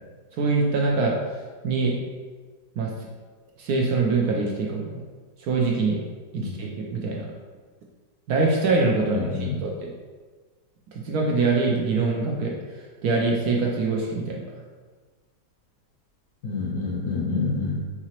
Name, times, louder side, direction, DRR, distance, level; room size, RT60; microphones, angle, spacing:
voice 1, 0.3-1.2 1.6-2.0 2.8-2.9 3.6-5.0 5.4-6.0 6.3-7.3 8.3-9.9 10.9-12.5 13.0-14.4, right 3 dB, 70° right, -1 dB, 0.9 m, -24 dB
voice 2, 9.0-9.6 16.4-17.8, left 4 dB, 65° left, -4 dB, 0.8 m, -27 dB
4.8 x 2.8 x 2.9 m, 1.4 s
omnidirectional pair, 1.9 m